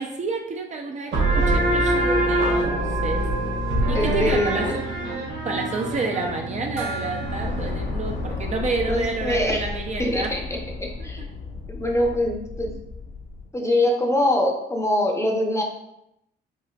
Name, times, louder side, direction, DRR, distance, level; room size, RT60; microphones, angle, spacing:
voice 1, 0.0-3.3 3.9-4.7 5.5-10.3 11.0-11.3, right 3 dB, 35° right, 2 dB, 0.4 m, -29 dB
sound 1, 1.1-8.4, right 1 dB, 60° right, 1.4 m, -24 dB
voice 2, 3.9-4.8 8.9-9.7 10.0-10.4 11.0-11.2 11.7-12.7 13.5-15.6, left 1 dB, 15° left, 1 dB, 0.6 m, -23 dB
Gong, 6.8-10.0, right 1 dB, 85° right, 0.6 m, -39 dB
sound 2, 7.2-13.5, left 4 dB, 65° left, 0.8 m, -33 dB
4.6 x 2.4 x 2.2 m, 0.82 s
cardioid pair, 90°, 20 cm